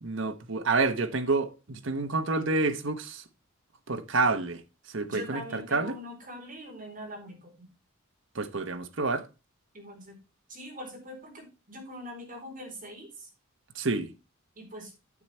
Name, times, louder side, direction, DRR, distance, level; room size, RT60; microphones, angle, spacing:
voice 1, 0.0-3.2 3.9-4.6 4.9-6.0 8.3-9.3 13.7-14.1, right 3 dB, 60° right, 1.1 m, -28 dB
voice 2, 5.1-7.7 9.7-10.2 10.5-13.3 14.6-14.9, equal, 40° right, 4.3 m, -42 dB
9.8 x 7.4 x 4.4 m
head